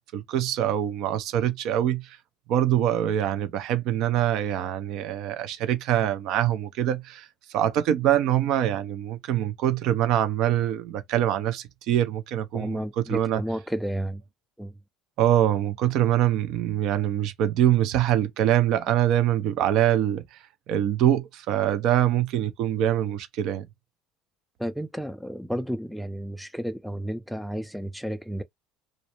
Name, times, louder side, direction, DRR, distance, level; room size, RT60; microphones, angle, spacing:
voice 1, 0.1-2.2 2.5-13.4 15.2-20.4 20.7-23.7, right 11 dB, 65° right, 0.5 m, -24 dB
voice 2, 12.5-14.2 14.6-14.7 24.6-28.4, equal, ahead, 0.3 m, -32 dB
2.5 x 2.0 x 2.9 m
supercardioid pair, 100°, 0 cm